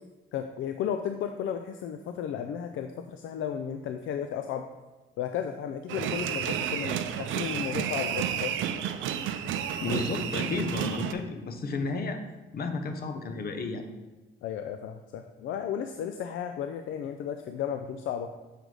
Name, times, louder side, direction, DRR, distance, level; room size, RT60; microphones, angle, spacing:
voice 1, 0.3-4.6 5.2-8.6 14.4-18.3, left 8 dB, 80° left, 6 dB, 0.4 m, -34 dB
sound 1, 5.9-11.1, right 9 dB, 80° right, 0.5 m, -31 dB
voice 2, 9.8-12.2 12.5-13.8, left 3 dB, 50° left, 6 dB, 0.9 m, -32 dB
6.6 x 4.7 x 3.9 m, 1.2 s
cardioid pair, 90°, 20 cm